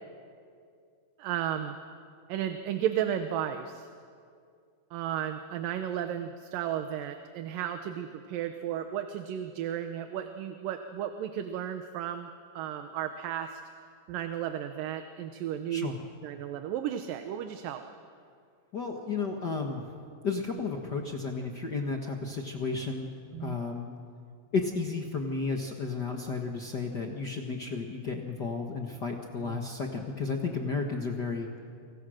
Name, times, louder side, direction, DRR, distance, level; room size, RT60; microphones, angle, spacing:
voice 1, 1.2-1.8 2.3-3.9 4.9-12.3 12.5-13.6 14.1-15.9 16.2-17.9 23.3-23.6 29.4-29.6, right 10 dB, 75° right, 8 dB, 2.5 m, -34 dB
voice 2, 18.7-19.8 20.2-23.1 23.4-23.9 24.5-31.5, left 4 dB, 60° left, 2 dB, 1.1 m, -33 dB
29.5 x 25.5 x 6.5 m, 2.3 s
omnidirectional pair, 4.2 m